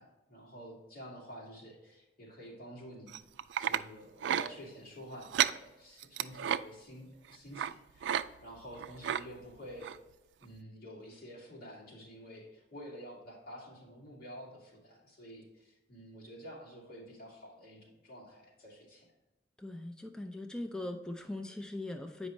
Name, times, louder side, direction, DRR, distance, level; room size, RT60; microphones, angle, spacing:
voice 1, 0.0-3.2 3.6-10.0 10.4-19.1, equal, 55° left, -4 dB, 2.3 m, -49 dB
sound 1, 3.1-3.8 4.2-4.5 5.2-5.6 6.0-6.6 7.5-7.7 8.0-8.2 8.5-9.2 9.8-10.0 10.4-10.5, right 9 dB, 90° right, 0.3 m, -31 dB
voice 2, 19.6-22.3, left 2 dB, 5° left, 4 dB, 0.4 m, -40 dB
8.3 x 5.2 x 3.1 m, 1.0 s
head